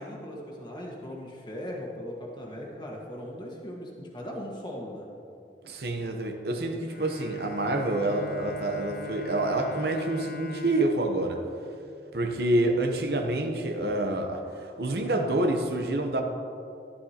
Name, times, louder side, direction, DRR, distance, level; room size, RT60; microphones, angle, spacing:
voice 1, 0.0-5.1, equal, 25° left, -2 dB, 1.4 m, -39 dB
voice 2, 5.6-11.4 12.1-16.2, right 1 dB, 60° right, 4 dB, 0.8 m, -27 dB
Bowed string instrument, 6.9-12.6, left 2 dB, 55° left, 0.7 m, -42 dB
11.5 x 11.5 x 2.9 m, 2.6 s
head